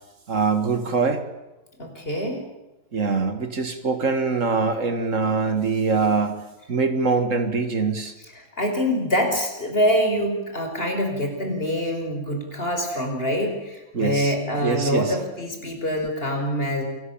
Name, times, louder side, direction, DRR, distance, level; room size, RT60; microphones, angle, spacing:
voice 1, 0.3-1.2 2.9-8.1 13.9-14.4 14.6-15.2, right 4 dB, 75° right, 8 dB, 2.2 m, -23 dB
voice 2, 1.8-2.4 8.4-16.8, equal, 50° left, 3 dB, 5.8 m, -25 dB
27.5 x 19.0 x 8.8 m, 1.0 s
omnidirectional pair, 1.3 m